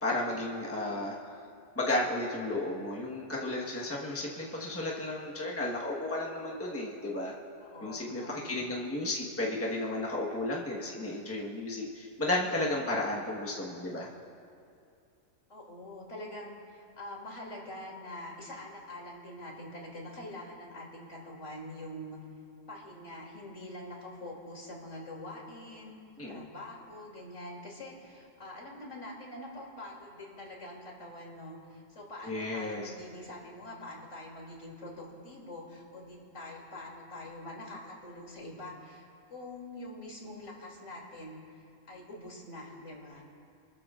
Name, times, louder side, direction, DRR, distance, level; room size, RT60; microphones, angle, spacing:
voice 1, 0.0-1.3 1.7-7.3 7.8-14.1 26.2-26.5 32.2-32.9, left 2 dB, 10° left, -4 dB, 1.3 m, -33 dB
voice 2, 7.6-8.5 15.5-22.2 22.7-25.9 26.3-43.2, left 1 dB, 70° left, -3 dB, 3.1 m, -45 dB
28.5 x 13.0 x 2.5 m, 2.5 s
omnidirectional pair, 1.3 m